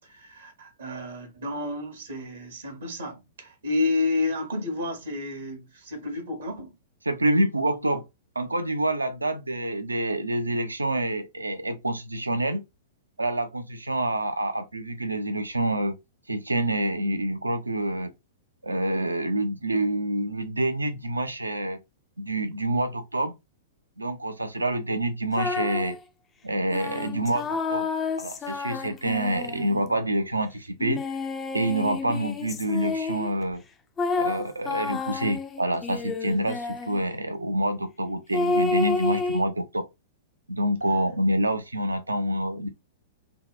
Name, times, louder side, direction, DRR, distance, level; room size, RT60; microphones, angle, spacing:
voice 1, 0.0-6.7, left 2 dB, 70° right, 0.8 m, -30 dB
voice 2, 7.1-8.0 8.4-12.6 13.2-16.0 16.3-18.1 18.6-21.8 22.2-23.3 24.0-26.0 26.4-27.9 28.2-31.0 31.5-33.6 34.2-39.8 40.5-42.7, right 1 dB, 85° right, 0.4 m, -27 dB
sound 1, 25.3-26.0 26.7-29.9 30.8-33.3 34.0-37.0 38.3-39.4, left 3 dB, 20° left, 0.3 m, -30 dB
2.7 x 2.0 x 2.2 m
figure-of-eight pair, 105°, 0 cm